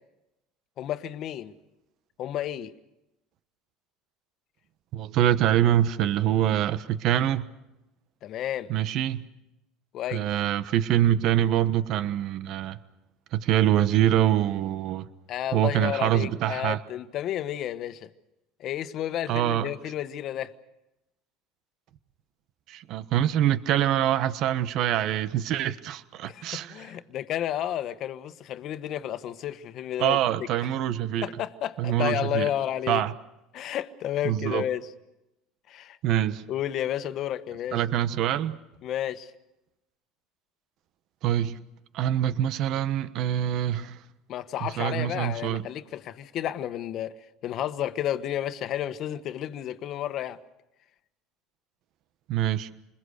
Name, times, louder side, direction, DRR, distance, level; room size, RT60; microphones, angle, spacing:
voice 1, 0.8-1.5 2.2-2.7 8.2-8.7 9.9-10.3 15.3-18.1 18.6-20.5 26.2-30.2 31.2-33.0 33.5-34.9 35.7-36.0 36.5-37.8 38.8-39.3 44.3-47.1 47.4-50.4, left 11 dB, 55° left, 1.3 m, -31 dB
voice 2, 4.9-7.4 8.7-9.2 10.1-12.8 13.3-15.1 15.5-16.8 19.3-19.7 22.7-26.9 30.0-31.3 31.8-32.5 32.9-33.1 34.2-34.7 36.0-36.4 37.7-38.6 41.2-41.6 41.9-44.0 44.6-45.6 52.3-52.7, right 11 dB, 60° right, 1.2 m, -25 dB
28.0 x 21.5 x 6.6 m
supercardioid pair, 105°, 0 cm